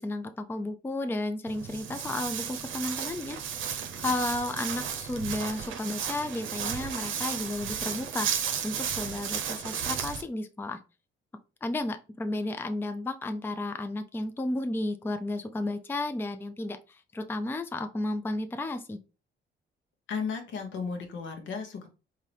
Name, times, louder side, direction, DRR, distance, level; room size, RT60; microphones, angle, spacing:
voice 1, 0.0-3.4 4.0-10.8 11.6-19.0, left 2 dB, 10° left, 8 dB, 0.4 m, -33 dB
Walk footsteps, 1.5-10.2, right 8 dB, 80° right, 0.7 m, -34 dB
voice 2, 20.1-21.9, left 5 dB, 75° left, 4 dB, 1.0 m, -34 dB
3.8 x 2.7 x 3.3 m, 0.32 s
cardioid pair, 90°, 20 cm